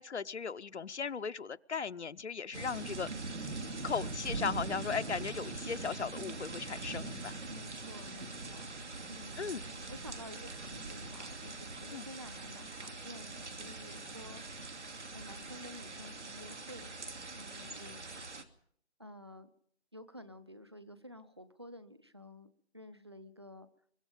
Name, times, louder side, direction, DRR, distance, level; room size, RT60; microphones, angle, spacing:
voice 1, 0.0-3.1 3.8-7.4 9.4-9.6 11.9-12.0, left 6 dB, 75° left, 11 dB, 0.8 m, -37 dB
sound 1, 2.5-18.4, right 3 dB, 90° right, 2.7 m, -42 dB
voice 2, 7.5-8.8 9.1-14.8 15.1-16.9 17.3-18.3 19.0-19.5 19.9-22.5 22.7-23.7, left 1 dB, 25° right, 15 dB, 0.8 m, -51 dB
23.5 x 23.0 x 5.3 m, 0.66 s
figure-of-eight pair, 175°, 34 cm